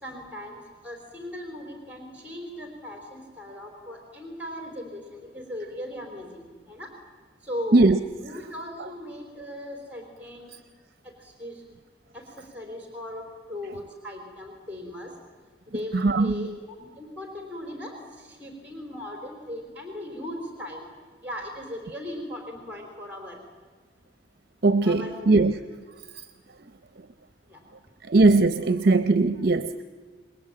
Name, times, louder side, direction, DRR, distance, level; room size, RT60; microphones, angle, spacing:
voice 1, 0.0-6.9 7.4-7.9 8.1-10.5 11.0-11.6 12.1-15.1 15.7-20.9 21.2-23.4 24.8-25.3 27.5-27.6, left 1 dB, 10° right, 3.9 m, -38 dB
voice 2, 15.9-16.5 24.6-25.5 26.1-26.3 28.1-29.8, right 3 dB, 55° right, 0.7 m, -20 dB
28.5 x 20.5 x 8.8 m
head